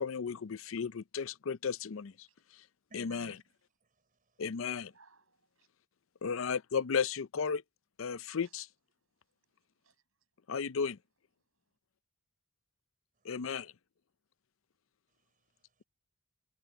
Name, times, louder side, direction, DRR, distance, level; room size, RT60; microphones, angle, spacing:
voice 1, 0.0-2.3 2.5-2.6 2.9-3.3 4.4-4.9 6.2-7.6 8.0-8.7 10.5-11.0 13.2-13.7, left 6 dB, 75° left, 0.5 m, -34 dB
voice 2, 2.9-3.4 3.8-4.4 13.2-13.3 15.1-15.8, right 2 dB, 40° right, 5.4 m, -60 dB
voice 3, 4.8-5.7 8.4-8.6 9.1-10.5 11.4-11.5, right 4 dB, 85° right, 6.1 m, -68 dB
head